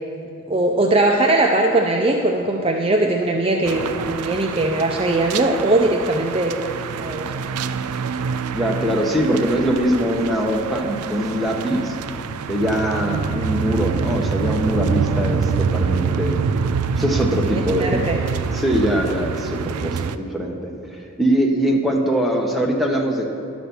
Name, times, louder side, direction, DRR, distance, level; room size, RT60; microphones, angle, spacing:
voice 1, 0.5-7.3 17.5-18.2, right 2 dB, 25° right, 2 dB, 0.4 m, -20 dB
sound 1, 3.6-20.2, right 5 dB, 90° right, 0.4 m, -26 dB
voice 2, 8.5-12.0 12.5-16.4 17.0-18.1 18.5-20.7 21.2-23.3, equal, ahead, 0 dB, 0.9 m, -22 dB
11.0 x 6.1 x 6.9 m, 2.6 s
head